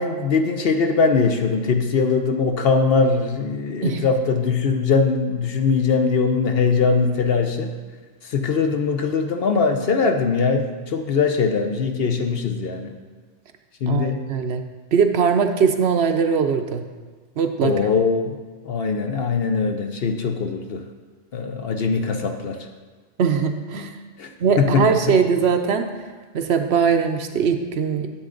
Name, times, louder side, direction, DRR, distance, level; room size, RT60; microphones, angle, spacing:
voice 1, 0.0-7.7 8.3-12.9 13.8-14.2 17.6-18.3 18.6-20.8 21.3-22.7 24.2-24.3 24.6-24.9, left 5 dB, 60° left, 5 dB, 0.8 m, -21 dB
voice 2, 13.9-14.6 14.9-16.8 17.4-17.9 23.2-23.9 24.4-25.8 26.3-28.1, right 6 dB, 60° right, 6 dB, 0.8 m, -20 dB
10.5 x 7.6 x 3.8 m, 1.4 s
omnidirectional pair, 1.3 m